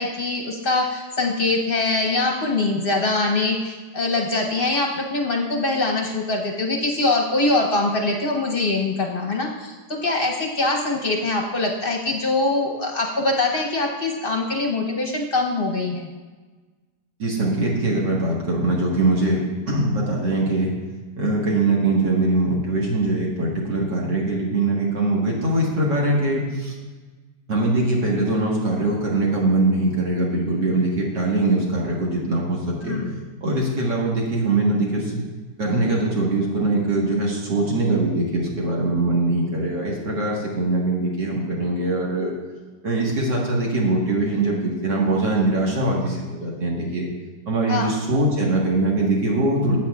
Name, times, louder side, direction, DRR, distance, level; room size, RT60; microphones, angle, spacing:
voice 1, 0.0-16.1 32.8-33.1 47.7-47.9, left 2 dB, 45° left, 0 dB, 0.8 m, -23 dB
voice 2, 17.2-19.4 19.7-20.7 21.2-26.7 27.5-33.0 33.4-35.2 35.6-42.3 42.8-47.1 47.5-49.8, right 2 dB, 75° right, -3 dB, 2.2 m, -22 dB
14.5 x 8.5 x 2.4 m, 1.3 s
omnidirectional pair, 1.9 m